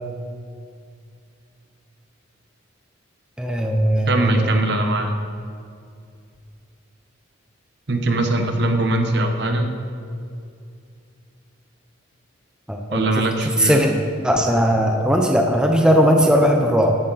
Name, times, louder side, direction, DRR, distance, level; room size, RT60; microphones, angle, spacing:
voice 1, 3.4-4.7 12.7-13.2 13.6-13.9 14.2-17.0, equal, 5° right, 2 dB, 0.6 m, -18 dB
voice 2, 4.1-5.1 7.9-9.7 12.9-13.8, right 2 dB, 55° right, 5 dB, 1.0 m, -21 dB
14.0 x 7.9 x 4.1 m, 2.4 s
head